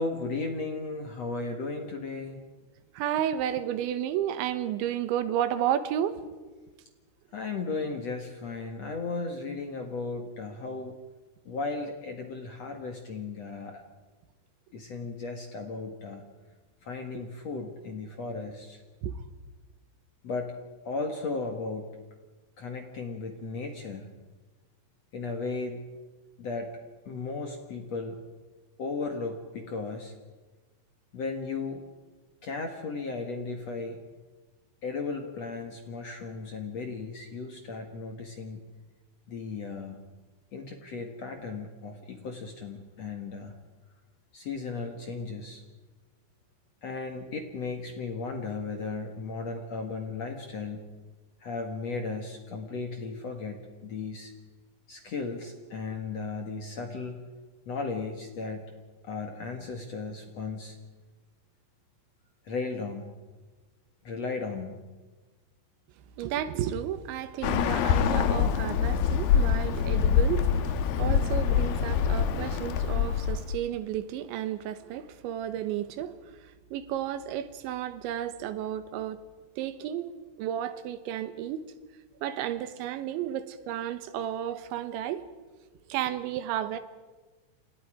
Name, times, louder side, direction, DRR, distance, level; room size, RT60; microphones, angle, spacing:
voice 1, 0.0-2.4 7.3-11.0 11.4-13.8 14.7-16.2 16.8-18.8 20.2-20.6 20.8-21.9 22.6-24.1 25.1-25.9 26.4-26.7 27.1-28.2 28.8-30.1 31.1-31.8 32.4-34.0 34.8-38.6 39.3-40.0 40.5-43.5 44.3-45.6 46.8-50.8 51.4-54.3 54.9-57.3 57.7-58.6 59.0-60.8 62.4-63.1 64.0-64.8, left 4 dB, 50° left, 2.1 m, -35 dB
voice 2, 2.9-6.2 19.0-19.2 66.2-79.2 79.6-81.6 82.2-85.2 85.9-86.8, right 10 dB, 85° right, 3.5 m, -32 dB
Bird, 67.4-73.6, left 7 dB, 70° left, 2.5 m, -25 dB
29.5 x 27.5 x 5.0 m
omnidirectional pair, 5.2 m